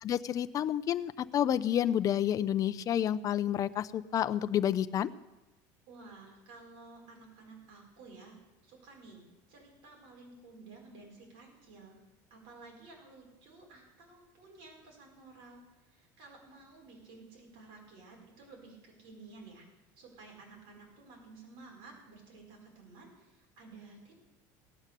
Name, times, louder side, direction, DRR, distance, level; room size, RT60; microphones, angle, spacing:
voice 1, 0.0-5.1, left 10 dB, 40° left, 14 dB, 0.6 m, -29 dB
voice 2, 5.9-8.3 8.6-12.0 12.3-19.6 19.9-24.1, right 3 dB, 65° right, 0 dB, 5.1 m, -53 dB
18.0 x 9.0 x 6.7 m, 1.1 s
supercardioid pair, 125°, 9 cm